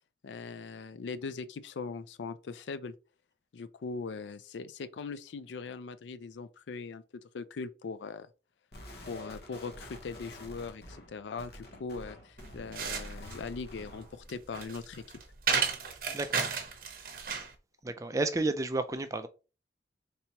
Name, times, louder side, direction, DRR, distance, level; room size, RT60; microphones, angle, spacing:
voice 1, 0.2-2.9 3.5-7.0 7.3-8.3 9.0-15.0, left 4 dB, 80° left, 0.4 m, -40 dB
sound 1, 8.7-14.2, left 1 dB, 60° left, 1.0 m, -48 dB
sound 2, 12.4-17.5, right 6 dB, 50° right, 0.8 m, -33 dB
voice 2, 16.1-16.5 17.8-19.3, right 2 dB, 20° right, 0.4 m, -31 dB
4.3 x 3.4 x 2.9 m
head